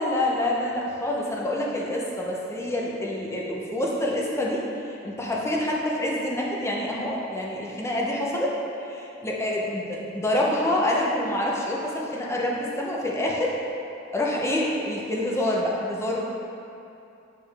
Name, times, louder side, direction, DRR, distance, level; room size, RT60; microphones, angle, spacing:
voice 1, 0.0-8.5 8.8-13.6 14.1-16.2, left 1 dB, 15° left, -4 dB, 0.8 m, -27 dB
6.9 x 5.2 x 3.4 m, 2.7 s
head